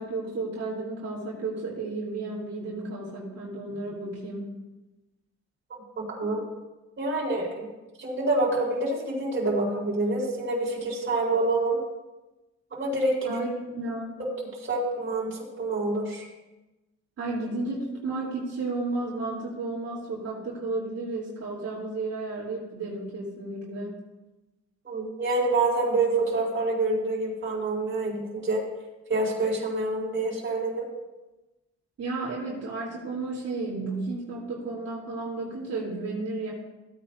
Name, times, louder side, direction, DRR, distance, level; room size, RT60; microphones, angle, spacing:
voice 1, 0.0-4.5 6.2-6.3 13.2-14.1 17.2-23.9 32.0-36.5, right 3 dB, 55° right, -7 dB, 3.4 m, -33 dB
voice 2, 6.0-6.4 7.0-7.7 8.0-11.8 12.7-13.4 14.2-14.3 14.6-16.3 24.8-28.6 29.1-30.9, right 2 dB, 40° right, -3 dB, 4.1 m, -27 dB
16.5 x 9.1 x 2.7 m, 1.1 s
cardioid pair, 90°, 30 cm